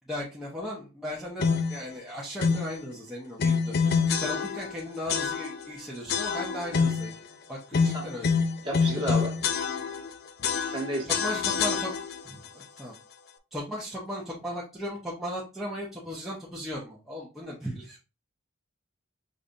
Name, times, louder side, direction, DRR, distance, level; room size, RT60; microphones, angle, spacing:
voice 1, 0.1-3.8 4.2-7.1 7.5-8.3 8.9-9.2 10.6-11.9 12.2-12.9 13.5-18.0, left 1 dB, ahead, -7 dB, 0.9 m, -37 dB
sound 1, 1.4-1.8 2.4-2.8 3.4-4.8 5.1-5.7 6.1-7.2 7.7-10.1 10.4-12.3, left 5 dB, 45° left, 0.4 m, -27 dB
voice 2, 8.6-9.3 10.7-11.1, equal, 25° right, -2 dB, 1.5 m, -31 dB
5.3 x 3.2 x 2.6 m, 0.30 s
head